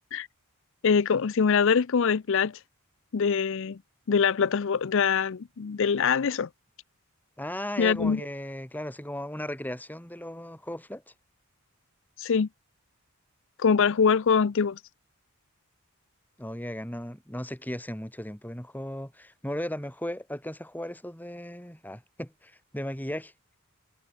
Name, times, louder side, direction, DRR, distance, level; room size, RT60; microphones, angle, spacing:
voice 1, 0.8-2.6 3.1-3.8 4.1-6.5 7.8-8.2 12.2-12.5 13.6-14.8, left 6 dB, 60° left, 0.5 m, -23 dB
voice 2, 7.4-11.0 16.4-23.3, left 1 dB, 10° left, 5.6 m, -36 dB
head